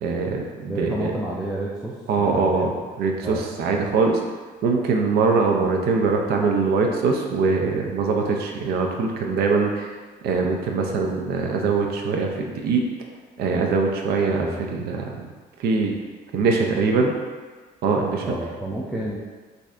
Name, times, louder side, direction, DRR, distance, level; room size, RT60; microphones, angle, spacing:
voice 1, 0.0-1.1 2.1-2.7 3.0-4.2 4.6-9.9 10.2-12.8 13.4-15.3 15.6-15.9 16.3-17.1 17.8-18.3, right 4 dB, 70° right, 2 dB, 0.6 m, -22 dB
voice 2, 0.7-2.7 3.2-3.5 14.2-14.6 18.2-19.2, right 1 dB, 5° right, -6 dB, 0.4 m, -31 dB
3.5 x 2.7 x 3.2 m, 1.4 s
cardioid pair, 110°, 17 cm